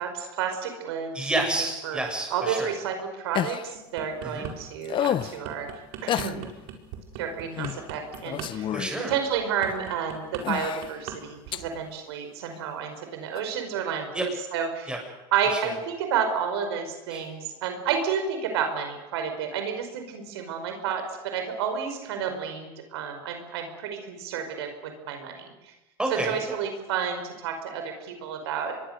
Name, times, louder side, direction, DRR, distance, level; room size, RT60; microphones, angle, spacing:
voice 1, 0.0-1.1 1.8-2.0 2.3-5.7 6.0-6.4 7.2-8.7 9.1-14.2 14.5-14.9 15.3-25.5 26.1-28.8, right 7 dB, 90° right, 5 dB, 4.9 m, -30 dB
voice 2, 1.1-2.7 4.2-4.5 8.7-9.1 14.1-14.2 14.9-15.0 15.5-15.7 17.1-17.3 26.0-26.4, right 2 dB, 5° right, 1 dB, 7.4 m, -29 dB
sound 1, 3.3-3.7 4.8-5.4 6.1-6.3 7.6-7.8 8.1-9.0 9.7-9.8 10.4-10.9 11.5-11.6 13.3-13.4, left 11 dB, 40° left, 0.8 m, -29 dB
Hitting Microphone, 3.7-4.5 5.0-11.2 11.4-11.7, right 9 dB, 70° right, 4.7 m, -39 dB
25.5 x 22.5 x 6.7 m, 1.0 s
supercardioid pair, 115°, 13 cm